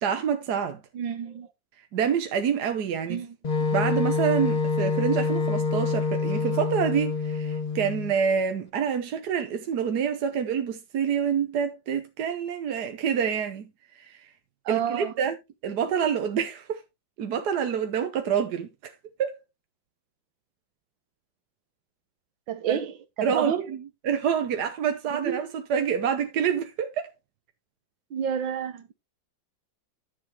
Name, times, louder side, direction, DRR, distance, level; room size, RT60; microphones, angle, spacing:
voice 1, 0.0-0.8 1.9-3.2 3.7-13.7 14.0-14.2 14.7-15.4 15.6-16.8 17.2-18.9 19.2-19.4 22.7-22.8 23.2-23.8 24.0-27.1, right 7 dB, 65° right, 1.4 m, -27 dB
voice 2, 0.9-1.5 3.1-3.4 14.7-15.1 22.5-23.6 25.1-25.4 28.1-28.9, right 8 dB, 90° right, 1.9 m, -30 dB
Wind instrument woodwind instrument, 3.4-8.1, left 4 dB, 45° left, 0.5 m, -26 dB
10.5 x 7.3 x 3.0 m
omnidirectional pair, 2.0 m